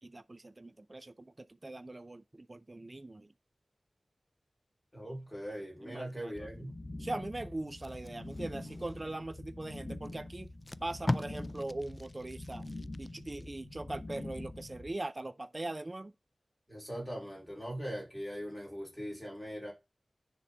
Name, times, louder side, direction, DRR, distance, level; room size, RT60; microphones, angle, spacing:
voice 1, 0.0-3.3 5.8-6.7 7.0-10.5 10.8-12.7 13.0-16.1, right 2 dB, 40° right, 0.4 m, -41 dB
voice 2, 4.9-6.7 16.7-19.7, equal, 10° left, 3.9 m, -41 dB
sound 1, 6.3-14.9, left 1 dB, 55° left, 1.5 m, -45 dB
Packing tape duct tape, 7.7-9.3 10.0-10.1 10.5-13.5 13.9-14.1, left 2 dB, 30° left, 0.3 m, -40 dB
10.0 x 3.7 x 3.9 m
cardioid pair, 45°, 0 cm